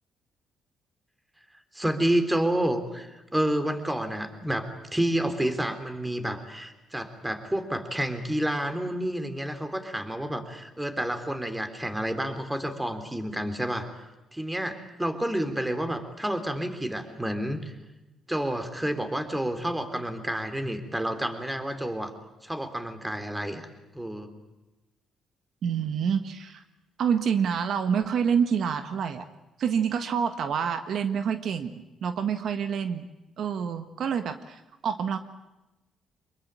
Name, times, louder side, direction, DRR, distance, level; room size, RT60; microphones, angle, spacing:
voice 1, 1.7-13.9 14.3-17.7 18.3-22.1 22.4-23.7 23.9-24.3, right 1 dB, 10° right, 8 dB, 3.4 m, -29 dB
voice 2, 25.6-26.6 27.0-29.3 29.6-33.0 33.4-35.2, right 7 dB, 65° right, 9 dB, 1.5 m, -27 dB
25.0 x 22.0 x 8.9 m, 1.0 s
cardioid pair, 90°, 0 cm